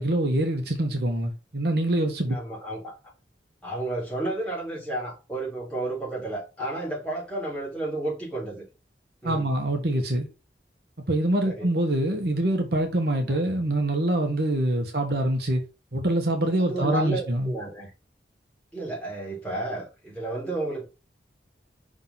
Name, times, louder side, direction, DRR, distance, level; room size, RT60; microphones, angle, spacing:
voice 1, 0.0-2.3 9.2-10.3 11.1-15.6 15.9-17.5, right 1 dB, 60° right, 1.3 m, -25 dB
voice 2, 2.3-3.0 3.6-8.6 9.2-9.5 11.4-11.7 13.3-13.4 14.7-14.9 16.6-17.9 18.7-20.8, right 2 dB, 5° left, 3.4 m, -32 dB
5.6 x 3.7 x 5.7 m
head